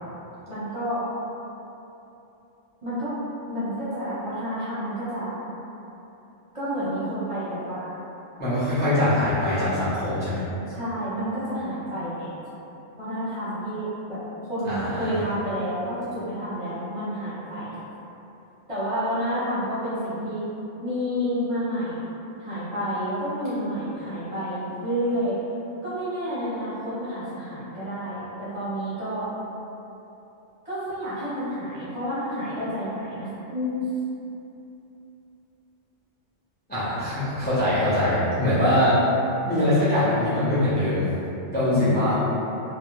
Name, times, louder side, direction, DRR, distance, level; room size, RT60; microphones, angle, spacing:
voice 1, 0.5-1.1 2.8-3.2 3.5-5.3 6.5-7.9 10.7-12.3 13.0-17.7 18.7-20.5 20.8-22.1 22.4-25.4 25.8-29.3 30.6-33.8 41.6-42.1, equal, 35° right, -13 dB, 0.6 m, -29 dB
voice 2, 8.4-10.4 14.6-15.1 36.7-39.0 39.5-41.0 41.5-42.2, left 1 dB, 15° left, -13 dB, 0.3 m, -22 dB
2.3 x 2.0 x 2.9 m, 2.9 s
omnidirectional pair, 1.3 m